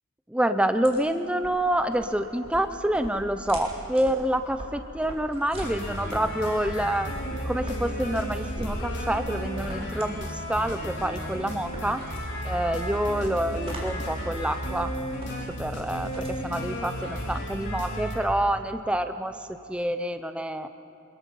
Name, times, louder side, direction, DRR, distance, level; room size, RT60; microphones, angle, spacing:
voice 1, 0.3-12.0 12.4-14.9 15.6-19.3 19.7-20.7, right 1 dB, 5° right, 8 dB, 0.6 m, -27 dB
sound 1, 0.6-18.1, equal, 30° right, 4.1 m, -42 dB
sound 2, 5.5-18.2, equal, 55° left, 4.4 m, -34 dB
25.0 x 21.5 x 5.5 m, 2.5 s
head